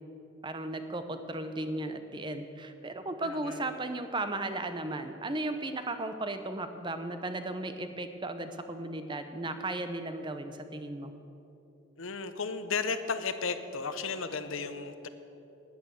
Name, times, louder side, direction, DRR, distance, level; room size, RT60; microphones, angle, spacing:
voice 1, 0.4-11.1, right 2 dB, 20° right, 9 dB, 0.6 m, -35 dB
voice 2, 3.2-3.6 12.0-15.1, left 5 dB, 70° left, 10 dB, 0.7 m, -34 dB
10.5 x 9.5 x 7.9 m, 2.9 s
head